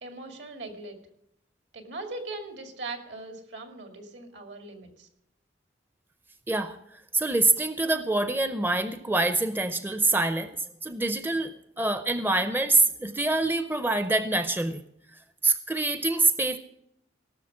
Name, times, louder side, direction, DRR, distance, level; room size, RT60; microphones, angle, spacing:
voice 1, 0.0-1.0 1.7-5.1, right 2 dB, 75° right, 5 dB, 2.3 m, -40 dB
voice 2, 7.1-14.8 15.4-16.6, right 2 dB, 10° right, 11 dB, 0.6 m, -25 dB
17.5 x 6.5 x 7.4 m, 0.77 s
head